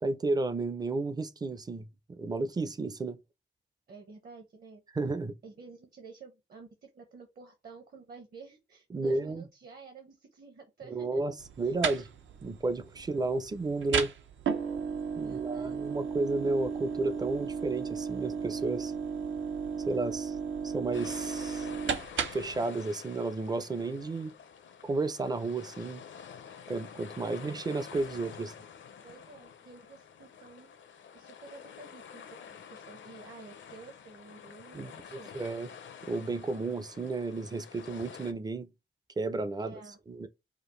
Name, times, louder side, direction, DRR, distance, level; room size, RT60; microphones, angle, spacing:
voice 1, 0.0-1.9 2.2-3.2 4.9-5.3 8.9-9.4 10.9-12.1 12.4-14.1 15.2-18.9 19.9-20.4 20.6-21.7 22.3-24.3 24.8-26.0 26.7-28.5 34.7-34.9 35.3-35.7 36.0-38.7 39.2-39.8 40.1-40.3, right 3 dB, 20° right, 0.4 m, -32 dB
voice 2, 3.9-4.8 5.4-11.2 11.6-11.7 15.2-15.8 27.2-27.5 29.0-30.8 31.1-35.3 39.6-40.0, right 4 dB, 50° right, 0.9 m, -51 dB
sound 1, 11.4-22.6, right 6 dB, 75° right, 0.7 m, -35 dB
sound 2, 20.9-38.3, left 7 dB, 70° left, 0.6 m, -49 dB
5.0 x 2.4 x 3.1 m
wide cardioid pair, 155°, 20 cm